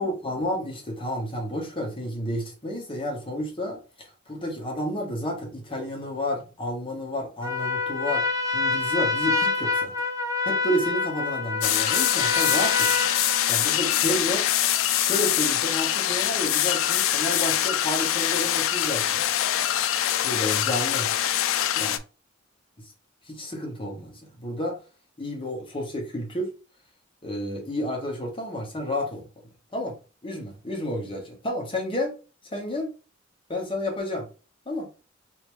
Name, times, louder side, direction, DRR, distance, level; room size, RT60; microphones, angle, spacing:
voice 1, 0.0-8.2 8.5-10.1 10.4-12.9 13.5-14.4 15.0-19.3 20.2-21.1 21.7-22.0 23.3-24.8 25.2-26.5 27.2-29.3 29.7-30.0 30.2-32.2 32.5-32.9 33.5-34.3 34.7-34.9, left 1 dB, 25° left, 1.1 m, -30 dB
Trumpet, 7.4-13.9, left 4 dB, 20° right, 0.5 m, -27 dB
sound 1, 11.6-22.0, left 11 dB, 85° left, 0.3 m, -24 dB
3.2 x 2.7 x 3.1 m
head